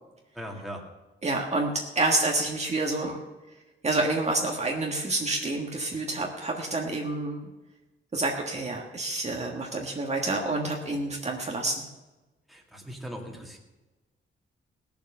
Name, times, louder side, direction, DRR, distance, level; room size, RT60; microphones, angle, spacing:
voice 1, 0.3-0.9 12.5-13.6, equal, ahead, 0 dB, 2.2 m, -39 dB
voice 2, 1.2-3.2 3.8-7.5 8.1-11.8, right 2 dB, 30° right, 0 dB, 1.6 m, -28 dB
18.0 x 7.2 x 6.7 m, 1.1 s
wide cardioid pair, 125°, 21 cm